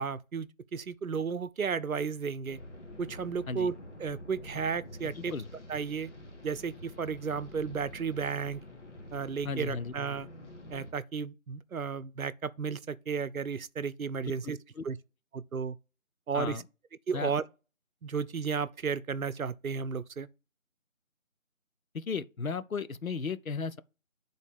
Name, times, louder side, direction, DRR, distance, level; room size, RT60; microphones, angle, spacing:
voice 1, 0.0-2.6 3.0-3.7 4.0-5.3 5.7-6.1 6.4-8.6 9.1-10.3 10.7-14.6 14.8-15.0 15.3-15.8 16.3-16.6 17.1-17.4 18.0-20.3, right 6 dB, 90° right, 0.7 m, -33 dB
sound 1, 2.5-10.9, left 1 dB, 60° left, 1.8 m, -47 dB
voice 2, 5.2-5.5 9.4-9.9 14.2-14.8 16.3-16.6 17.1-17.3 21.9-23.8, left 4 dB, 85° left, 0.8 m, -35 dB
8.7 x 4.0 x 3.4 m
figure-of-eight pair, 170°, 40 cm